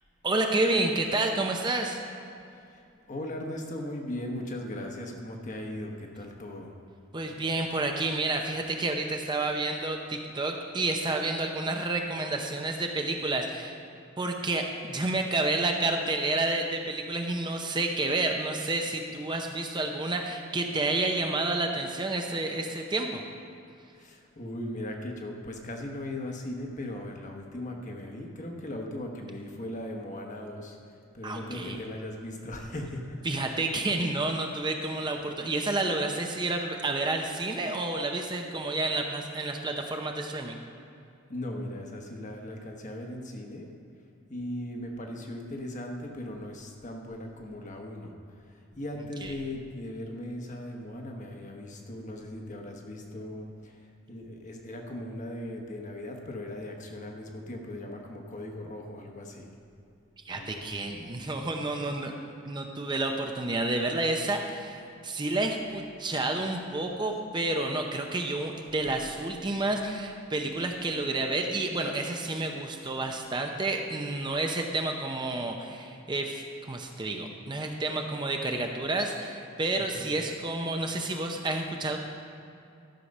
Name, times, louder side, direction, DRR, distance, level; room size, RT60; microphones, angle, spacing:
voice 1, 0.2-2.0 7.1-13.7 14.2-23.2 31.2-31.8 33.2-40.6 49.2-49.3 60.2-62.1 62.4-82.0, right 2 dB, 20° right, 3 dB, 0.6 m, -30 dB
voice 2, 2.5-2.8 3.1-6.7 24.0-30.8 31.1-33.7 34.8-35.2 41.3-43.7 44.3-48.1 48.5-53.8 54.1-59.5 60.3-60.6 68.7-69.0 69.4-69.9 79.7-80.4, left 1 dB, 40° left, 2 dB, 1.2 m, -38 dB
13.0 x 6.4 x 5.4 m, 2.5 s
head